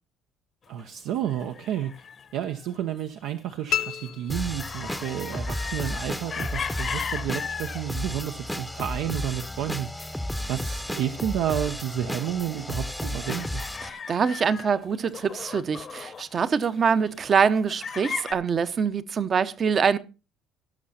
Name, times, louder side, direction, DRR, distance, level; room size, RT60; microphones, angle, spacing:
sound 1, 0.7-7.9 8.4-10.7 11.0-11.4 11.7-18.3, left 6 dB, 35° left, 0.9 m, -38 dB
voice 1, 0.7-2.0 2.3-9.9 10.1-13.6, right 10 dB, 80° right, 0.9 m, -31 dB
sound 2, 3.7-5.3, left 11 dB, 60° left, 1.1 m, -32 dB
sound 3, 4.3-13.9, left 1 dB, ahead, 0.8 m, -33 dB
voice 2, 13.9-20.0, right 6 dB, 35° right, 0.8 m, -24 dB
17.0 x 6.5 x 4.2 m
cardioid pair, 145°, 0 cm